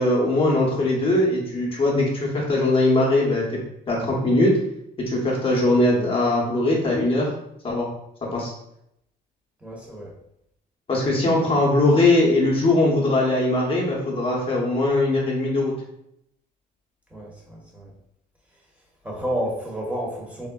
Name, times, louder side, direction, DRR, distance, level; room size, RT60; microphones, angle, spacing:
voice 1, 0.0-3.6 3.9-4.6 5.1-7.3 7.6-7.9 8.3-8.5 10.9-15.7, left 2 dB, 35° left, -2 dB, 0.7 m, -20 dB
voice 2, 9.6-10.2 17.1-17.9 19.0-20.5, equal, 10° right, -3 dB, 0.8 m, -30 dB
3.5 x 2.1 x 2.2 m, 0.77 s
cardioid pair, 110°, 17 cm